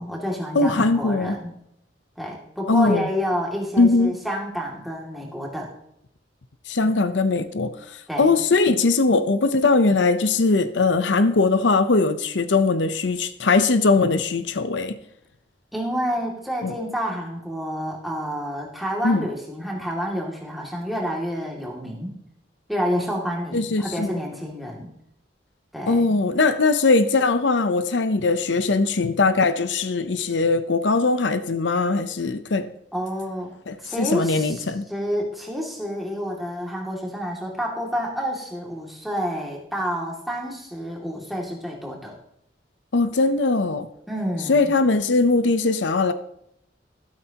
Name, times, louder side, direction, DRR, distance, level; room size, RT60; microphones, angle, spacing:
voice 1, 0.0-1.5 2.2-5.7 8.1-8.3 15.7-22.1 22.7-24.9 25.7-26.2 32.9-33.5 33.8-42.1 44.1-44.7, equal, ahead, 2.4 m, -29 dB
voice 2, 0.5-1.4 2.7-3.1 3.8-4.2 6.7-15.0 16.6-16.7 19.0-19.2 23.5-24.1 25.9-32.7 33.7-34.9 42.9-43.9 44.5-46.1, left 3 dB, 90° left, 0.7 m, -20 dB
12.5 x 12.5 x 2.9 m
head